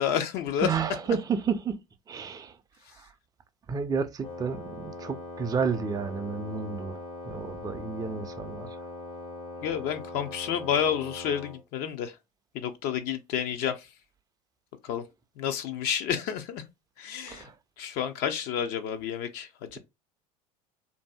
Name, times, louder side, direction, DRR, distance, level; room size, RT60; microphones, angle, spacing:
voice 1, 0.0-0.7 9.6-12.1 12.5-13.9 14.8-15.0 15.4-16.6 17.0-17.5 17.8-19.8, left 9 dB, 55° left, 0.5 m, -30 dB
voice 2, 0.6-1.8 2.1-2.6 2.9-3.1 3.7-7.0 7.2-8.8 17.2-17.6, right 6 dB, 20° right, 0.4 m, -31 dB
Wind instrument woodwind instrument, 4.2-11.6, left 2 dB, 75° left, 1.3 m, -41 dB
2.6 x 2.6 x 2.2 m
hypercardioid pair, 75°, 19 cm